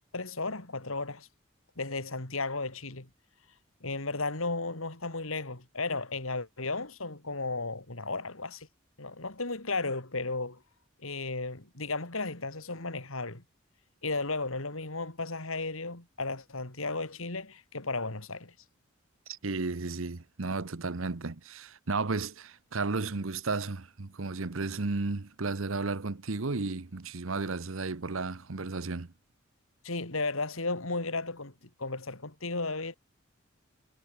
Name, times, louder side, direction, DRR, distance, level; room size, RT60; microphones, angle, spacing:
voice 1, 0.1-1.3 1.8-3.1 3.8-8.7 9.0-10.6 11.0-13.4 14.0-18.5 29.8-31.5 31.8-32.9, left 3 dB, 85° left, 3.6 m, -34 dB
voice 2, 19.3-29.1, right 3 dB, 80° right, 1.0 m, -33 dB
head